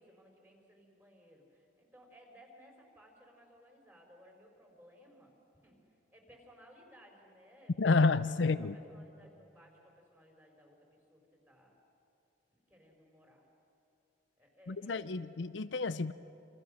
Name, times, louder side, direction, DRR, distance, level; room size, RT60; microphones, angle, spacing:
voice 1, 0.0-8.1 8.4-11.8 12.5-13.5 14.4-15.2, equal, 10° right, 1 dB, 4.6 m, -60 dB
voice 2, 7.8-8.7 14.7-16.1, left 3 dB, 70° left, 13 dB, 0.6 m, -29 dB
28.0 x 27.5 x 6.5 m, 2.8 s
head